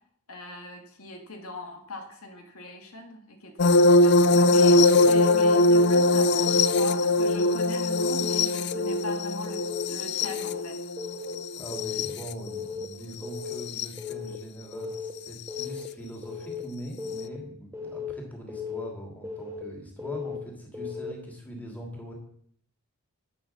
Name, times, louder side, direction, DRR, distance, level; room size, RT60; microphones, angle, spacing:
voice 1, 0.3-10.8, left 3 dB, 75° left, 3 dB, 2.3 m, -40 dB
sound 1, 3.6-12.3 13.6-13.9 15.6-15.7, left 2 dB, 50° left, 0.5 m, -21 dB
Keyboard (musical) / Alarm, 5.0-5.3 5.7-6.1 6.5-6.8 7.2-7.6 8.0-8.3 8.7-9.1 9.5-9.8 10.2-10.6 11.0-11.3 11.7-12.1 12.5-12.9 13.2-13.6 14.0-14.4 14.7-15.1 15.5-15.9 16.2-16.6 17.0-17.4 17.7-18.1 18.5-18.9 19.2-19.6 20.0-20.4 20.7-21.1, left 6 dB, 10° right, 1.5 m, -36 dB
voice 2, 11.6-22.1, right 1 dB, 5° left, 0 dB, 2.9 m, -41 dB
11.5 x 8.9 x 6.3 m, 0.63 s
head